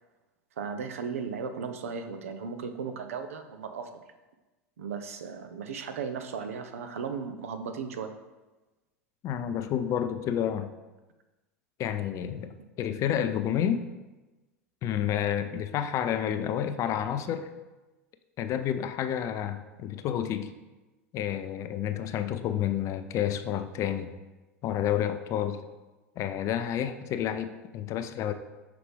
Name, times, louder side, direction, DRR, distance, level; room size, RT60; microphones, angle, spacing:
voice 1, 0.6-4.0 4.8-8.1, right 6 dB, 75° right, 8 dB, 0.6 m, -36 dB
voice 2, 9.2-10.7 11.8-13.8 14.8-17.5 18.4-20.5 21.1-24.1 24.6-25.6 26.2-28.3, left 10 dB, 45° left, 10 dB, 0.5 m, -30 dB
5.9 x 4.9 x 3.5 m, 1.1 s
hypercardioid pair, 85°, 8 cm